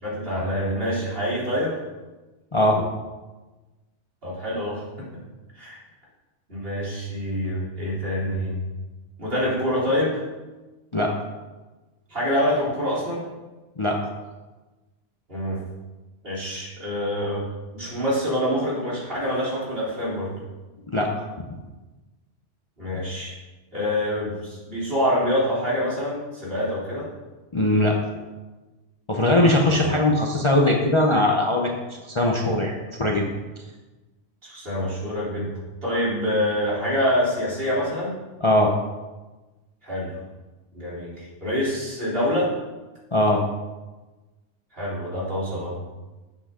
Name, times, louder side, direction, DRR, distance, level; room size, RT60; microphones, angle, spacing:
voice 1, 0.0-1.8 4.2-4.8 5.6-5.8 6.5-8.6 9.2-10.2 12.1-13.2 15.3-15.6 16.2-17.5 17.7-20.3 22.8-23.3 23.7-27.1 29.6-30.0 34.4-35.5 35.8-38.1 39.8-40.2 40.7-42.5 44.7-45.8, equal, 50° right, -8 dB, 4.0 m, -26 dB
voice 2, 2.5-2.8 10.9-11.1 13.8-14.1 20.9-21.6 27.5-28.0 29.1-31.7 32.1-33.3 38.4-38.7 43.1-43.4, left 1 dB, 30° left, 1 dB, 0.8 m, -20 dB
12.0 x 7.8 x 3.8 m, 1.2 s
omnidirectional pair, 1.2 m